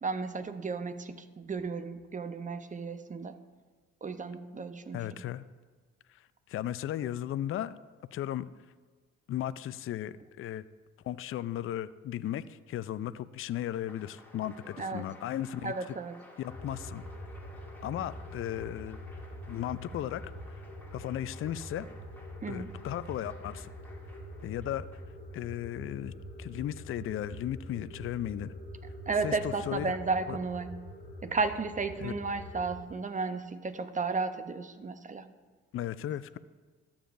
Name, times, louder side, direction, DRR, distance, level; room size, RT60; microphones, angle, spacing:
voice 1, 0.0-3.4 4.0-5.0 14.8-15.1 15.6-16.2 22.4-22.8 29.1-30.7 31.2-35.3, right 4 dB, 25° right, 10 dB, 0.8 m, -33 dB
voice 2, 4.9-5.4 6.1-6.2 6.5-7.8 8.1-8.5 9.3-10.6 11.0-15.7 16.4-17.0 17.8-19.0 19.5-20.2 20.9-21.9 22.5-23.7 24.4-24.9 25.3-26.1 26.4-28.5 29.2-30.0 30.3-30.4 32.0-32.1 35.7-36.4, left 12 dB, 45° left, 15 dB, 0.4 m, -35 dB
Applause, 13.5-25.4, left 1 dB, 5° left, 2.3 m, -55 dB
sound 1, 16.5-32.9, equal, 30° left, 1.9 m, -45 dB
13.0 x 7.1 x 2.6 m, 1.4 s
hypercardioid pair, 55°, 30 cm